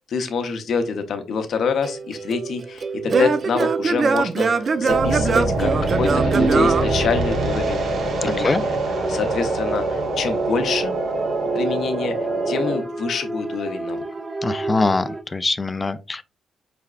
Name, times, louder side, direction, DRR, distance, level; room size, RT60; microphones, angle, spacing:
voice 1, 0.1-5.7 6.0-7.9 8.2-10.9 11.5-12.1 12.5-14.0, left 5 dB, 65° left, 0.7 m, -26 dB
Singing / Plucked string instrument, 1.8-7.7, right 4 dB, 50° right, 0.4 m, -22 dB
sound 1, 4.9-12.7, right 2 dB, 65° right, 0.9 m, -24 dB
sound 2, 8.9-15.2, right 2 dB, 35° right, 1.0 m, -31 dB
voice 2, 14.4-16.2, left 3 dB, 30° left, 0.4 m, -23 dB
4.6 x 3.4 x 2.3 m
supercardioid pair, 60°, 0 cm